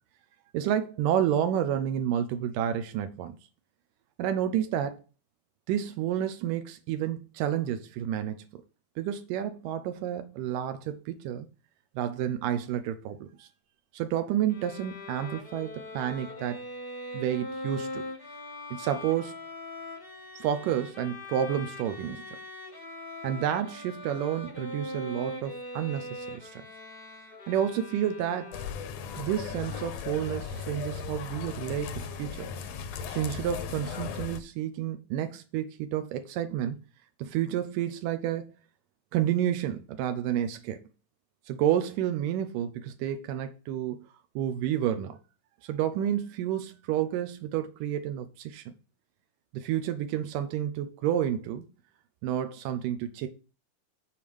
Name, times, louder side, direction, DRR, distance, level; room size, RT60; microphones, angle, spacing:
voice 1, 0.5-3.4 4.2-5.0 5.7-8.5 9.0-11.5 12.0-13.5 13.9-16.6 17.1-18.0 18.7-19.3 20.4-22.4 23.2-26.6 27.5-28.6 29.1-32.5 33.1-36.8 37.2-38.5 39.1-40.8 41.5-44.1 44.4-45.2 45.6-48.7 49.5-51.6 52.2-53.3, right 10 dB, 85° right, 2.4 m, -30 dB
Bowed string instrument, 14.5-29.0, left 1 dB, 35° left, 0.8 m, -41 dB
sound 1, 28.5-34.4, left 6 dB, 70° left, 1.7 m, -37 dB
7.3 x 4.8 x 6.9 m
omnidirectional pair, 3.8 m